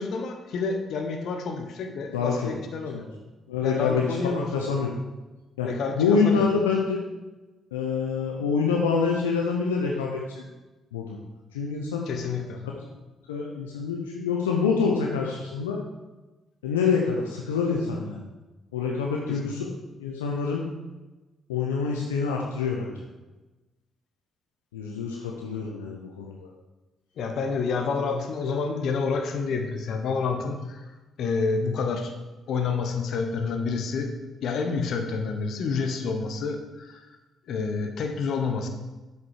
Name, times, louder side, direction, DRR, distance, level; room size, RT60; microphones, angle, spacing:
voice 1, 0.0-3.0 3.6-4.5 5.6-6.0 6.2-6.4 12.1-12.6 19.3-19.5 27.2-30.8 31.2-32.1 32.5-34.1 34.4-37.0 37.5-38.7, left 4 dB, 65° left, 5 dB, 1.2 m, -29 dB
voice 2, 2.1-2.5 2.9-3.0 3.5-4.9 5.6-5.7 5.9-7.0 7.7-10.4 10.9-11.2 11.5-12.1 13.3-15.8 16.6-18.3 18.7-19.7 20.0-20.6 21.5-22.9 24.7-26.5, left 5 dB, 90° left, -1 dB, 0.8 m, -26 dB
8.1 x 7.2 x 4.9 m, 1.1 s
hypercardioid pair, 45°, 0 cm